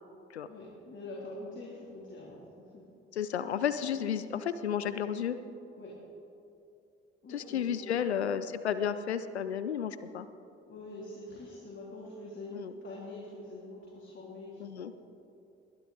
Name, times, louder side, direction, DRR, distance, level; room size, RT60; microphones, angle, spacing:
voice 1, 0.5-2.8 5.8-6.0 7.2-8.1 10.7-15.0, left 2 dB, 35° left, -5 dB, 3.0 m, -45 dB
voice 2, 3.1-5.4 7.3-10.3 12.5-12.7 14.6-14.9, left 8 dB, 85° left, 13 dB, 0.5 m, -32 dB
21.0 x 11.5 x 4.0 m, 2.6 s
figure-of-eight pair, 45°, 32 cm